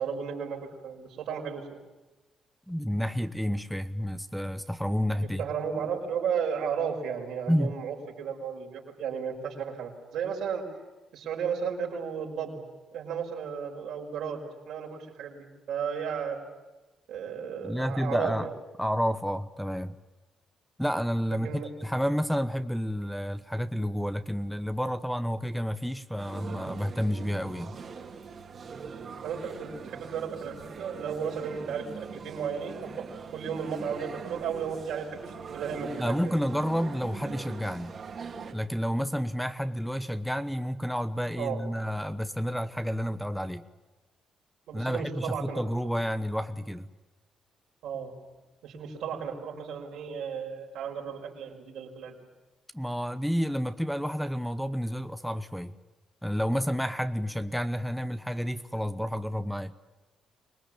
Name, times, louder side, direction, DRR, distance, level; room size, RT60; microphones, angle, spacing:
voice 1, 0.0-1.8 5.2-10.7 11.1-12.6 12.9-16.4 17.1-18.5 21.3-21.7 29.2-33.1 33.3-36.3 41.4-41.6 44.7-45.6 47.8-48.1 48.6-52.1, right 7 dB, 80° right, 1 dB, 5.2 m, -34 dB
voice 2, 2.7-5.4 7.5-7.8 17.6-18.5 18.8-20.0 20.8-27.8 36.0-38.0 38.5-43.6 44.7-46.9 52.7-55.7 56.2-59.7, equal, ahead, 11 dB, 1.0 m, -30 dB
sound 1, 26.2-38.5, right 5 dB, 50° right, 2.7 m, -42 dB
25.0 x 19.5 x 8.9 m, 1.1 s
cardioid pair, 90°, 0 cm